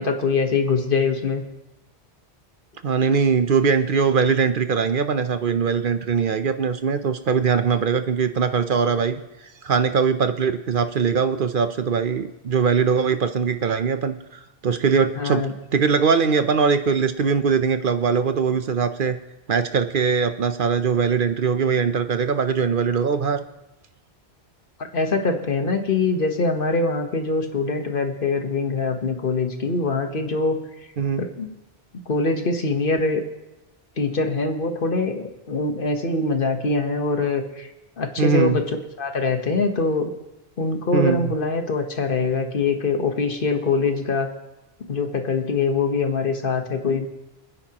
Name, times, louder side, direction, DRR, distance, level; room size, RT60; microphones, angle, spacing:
voice 1, 0.0-1.4 8.8-9.0 15.2-15.5 24.9-30.6 31.2-31.5 32.1-33.2 34.0-37.7 38.0-40.1 40.6-44.3 44.9-47.1, left 3 dB, 55° left, 6 dB, 1.3 m, -23 dB
voice 2, 2.8-9.2 9.6-14.2 14.6-19.2 19.5-23.4 31.0-31.2 38.2-38.6 40.9-41.3, right 6 dB, 55° right, 10 dB, 0.8 m, -21 dB
27.0 x 9.9 x 2.9 m, 0.96 s
omnidirectional pair, 1.1 m